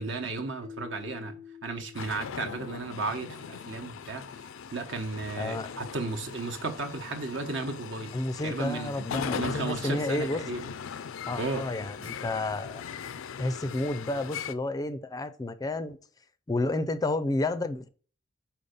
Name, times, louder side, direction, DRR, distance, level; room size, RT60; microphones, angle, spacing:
voice 1, 0.0-4.3 4.7-8.1 8.4-10.7 11.3-11.6 12.0-12.1, right 3 dB, 65° right, 1.0 m, -34 dB
Keyboard (musical), 0.6-3.5, left 7 dB, 20° right, 0.7 m, -48 dB
sound 1, 1.9-14.5, left 6 dB, 90° left, 0.4 m, -39 dB
voice 2, 5.4-5.7 8.1-10.4 11.3-12.8 13.4-16.0 16.5-17.9, left 2 dB, 20° left, 0.4 m, -31 dB
5.4 x 4.5 x 5.2 m
head